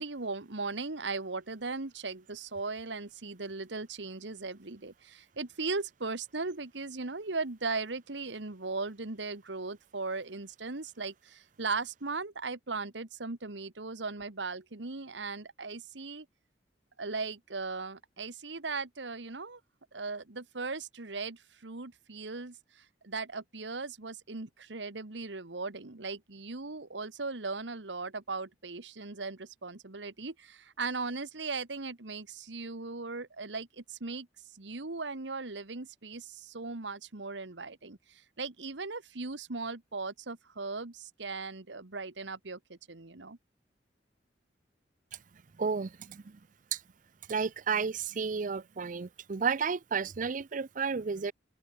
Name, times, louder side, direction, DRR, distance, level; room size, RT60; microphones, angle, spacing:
voice 1, 0.0-16.2 17.0-19.6 19.9-34.3 34.5-43.4, right 3 dB, 85° right, 1.6 m, -38 dB
voice 2, 45.6-46.4 46.7-46.8 47.3-51.3, right 5 dB, 45° right, 0.5 m, -32 dB
open air
head